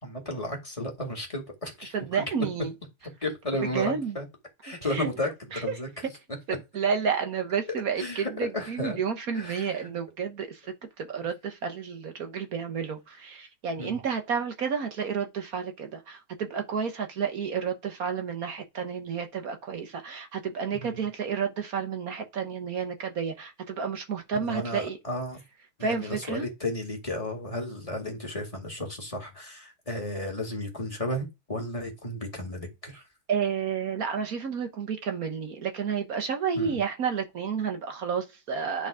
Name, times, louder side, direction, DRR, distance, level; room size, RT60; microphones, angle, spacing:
voice 1, 0.0-2.2 3.2-4.3 4.6-5.9 8.0-9.0 9.3-9.8 13.8-14.0 20.7-21.0 24.3-25.4 25.8-33.0 36.5-36.8, left 1 dB, 15° left, 2.1 m, -33 dB
voice 2, 1.9-2.7 3.6-4.2 4.8-5.1 5.5-5.7 6.5-25.0 25.8-26.5 33.3-38.9, right 6 dB, 50° right, 1.4 m, -31 dB
10.5 x 4.0 x 4.8 m
omnidirectional pair, 2.1 m